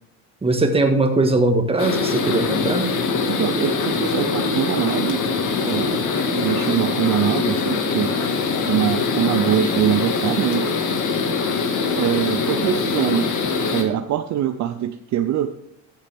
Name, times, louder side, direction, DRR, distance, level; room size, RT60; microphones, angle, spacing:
voice 1, 0.4-2.9, right 2 dB, 15° right, 5 dB, 1.6 m, -20 dB
sound 1, 1.8-13.8, left 4 dB, 50° left, 1.9 m, -23 dB
voice 2, 3.2-5.2 5.6-6.0 6.3-8.2 8.6-10.7 12.0-13.3 13.7-15.6, right 11 dB, 45° right, 9 dB, 0.7 m, -23 dB
14.5 x 7.3 x 3.5 m, 0.75 s
cardioid pair, 115°, 38 cm